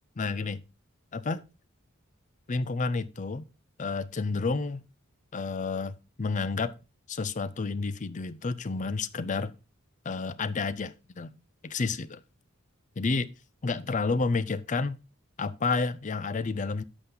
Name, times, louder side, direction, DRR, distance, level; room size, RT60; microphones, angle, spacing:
voice 1, 0.2-0.6 1.1-1.4 2.5-3.4 3.8-4.8 5.3-6.7 7.1-9.5 10.0-11.4 11.6-12.2 13.0-13.3 13.6-15.0 15.4-16.8, left 4 dB, 35° left, 0.5 m, -30 dB
11.0 x 6.2 x 3.8 m
head